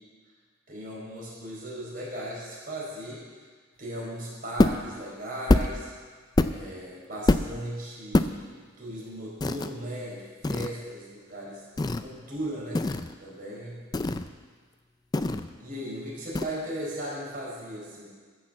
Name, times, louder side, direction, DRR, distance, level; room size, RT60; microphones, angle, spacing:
voice 1, 0.7-3.2 3.8-5.9 6.5-11.6 12.0-12.8 13.2-13.8 15.6-18.1, right 1 dB, 45° right, -5 dB, 4.6 m, -37 dB
sound 1, 4.6-4.9 5.5-5.8 6.4-6.8 7.3-7.6 8.1-8.3 9.4-9.7 10.4-10.7 11.8-12.0 12.7-13.1 13.9-14.3 15.1-15.6 16.3-16.5, left 2 dB, 20° left, 0.3 m, -24 dB
14.5 x 6.5 x 7.4 m, 1.5 s
head